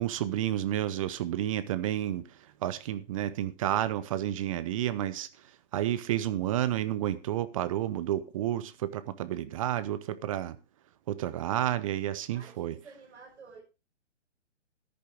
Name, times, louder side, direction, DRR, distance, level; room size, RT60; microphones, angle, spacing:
voice 1, 0.0-2.2 2.6-5.3 5.7-10.6 11.1-12.7, right 12 dB, 30° right, 0.7 m, -30 dB
voice 2, 12.3-13.6, right 4 dB, 70° right, 6.8 m, -51 dB
14.0 x 10.5 x 3.6 m
figure-of-eight pair, 135°, 36 cm